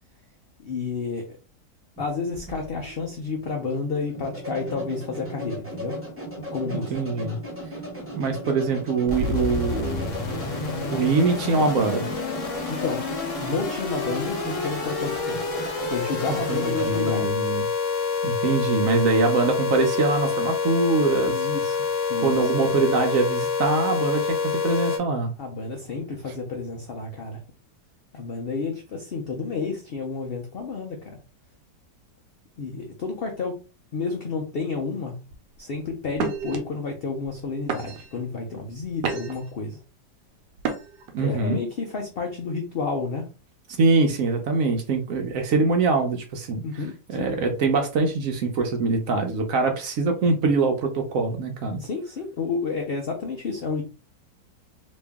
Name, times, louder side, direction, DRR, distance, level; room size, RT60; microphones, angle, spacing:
voice 1, 0.6-1.4 2.0-6.0 6.5-6.9 12.7-13.0 13.4-15.4 15.9-17.3 21.3-21.8 22.1-22.5 25.4-27.4 28.1-31.2 32.6-33.6 33.9-35.2 35.6-39.8 41.2-43.3 46.6-47.3 49.6-49.7 51.8-53.8, left 4 dB, 75° left, 2 dB, 0.5 m, -30 dB
sound 1, 2.0-17.3, right 1 dB, 10° right, 0.9 m, -37 dB
voice 2, 6.7-7.4 8.1-10.2 10.9-12.1 16.3-17.7 18.2-21.4 22.2-25.3 41.1-41.6 43.8-46.6 47.1-51.8, right 3 dB, 65° right, 4 dB, 0.9 m, -23 dB
sound 2, 9.1-25.0, left 5 dB, 55° left, 1.1 m, -27 dB
sound 3, 35.3-35.6 36.1-36.6 37.2-37.4 37.7-38.2 38.7-39.5 40.6-41.1, right 6 dB, 85° right, 1.3 m, -30 dB
3.0 x 2.6 x 3.5 m, 0.34 s
omnidirectional pair, 1.8 m